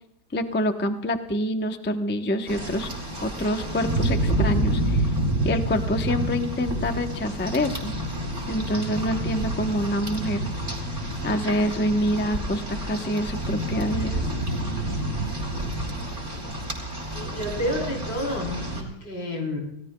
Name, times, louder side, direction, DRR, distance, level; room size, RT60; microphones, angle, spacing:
voice 1, 0.3-2.9 3.2-5.1 5.4-7.9 8.5-10.5 11.2-14.2, equal, 20° left, 6 dB, 0.3 m, -26 dB
Rain, 2.5-18.8, right 1 dB, 30° right, 3.2 m, -28 dB
voice 2, 17.1-19.6, left 1 dB, 90° left, 1 dB, 4.5 m, -30 dB
29.0 x 17.0 x 2.2 m, 0.79 s
omnidirectional pair, 1.9 m